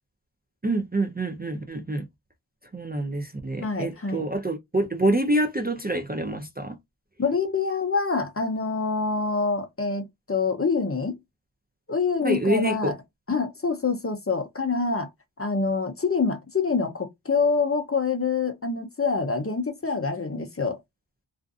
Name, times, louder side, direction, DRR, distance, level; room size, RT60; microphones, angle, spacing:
voice 1, 0.6-2.0 2.7-6.8 12.2-12.9, right 1 dB, 20° right, 0.4 m, -26 dB
voice 2, 3.6-4.2 7.2-11.2 11.9-12.9 13.3-15.1 15.4-20.8, left 4 dB, 30° left, 0.6 m, -26 dB
2.5 x 2.4 x 2.3 m
wide cardioid pair, 65°, 46 cm